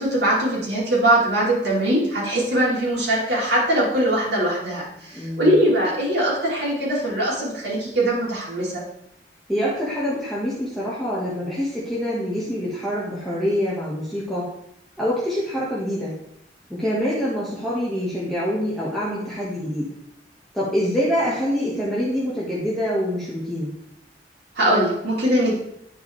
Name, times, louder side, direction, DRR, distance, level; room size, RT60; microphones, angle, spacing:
voice 1, 0.0-8.8 24.5-25.5, right 1 dB, 75° right, -5 dB, 3.0 m, -21 dB
voice 2, 5.1-5.6 9.5-14.5 15.0-16.1 16.7-19.9 20.5-23.7, equal, ahead, -8 dB, 1.4 m, -25 dB
10.5 x 4.8 x 3.2 m, 0.76 s
head